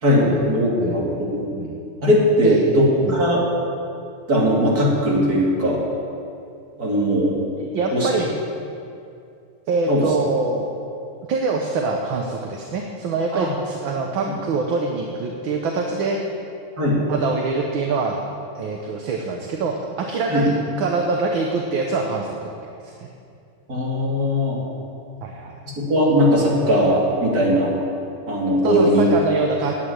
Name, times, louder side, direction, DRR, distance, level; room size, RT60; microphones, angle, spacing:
voice 1, 0.0-1.0 1.3-1.4 2.0-3.4 4.3-5.8 6.8-7.3 8.0-8.1 9.9-10.0 13.3-13.5 16.8-17.0 20.3-20.5 23.7-24.6 25.9-27.7 28.3-29.1, equal, 45° right, -5 dB, 3.2 m, -19 dB
voice 2, 0.8-1.2 1.5-1.8 2.4-2.6 3.0-3.2 7.6-8.3 9.7-10.7 11.3-16.2 17.1-18.2 18.5-22.3 22.8-23.1 25.2-25.6 28.6-29.7, right 4 dB, 70° right, 1 dB, 1.7 m, -24 dB
11.0 x 8.4 x 8.9 m, 2.5 s
omnidirectional pair, 2.4 m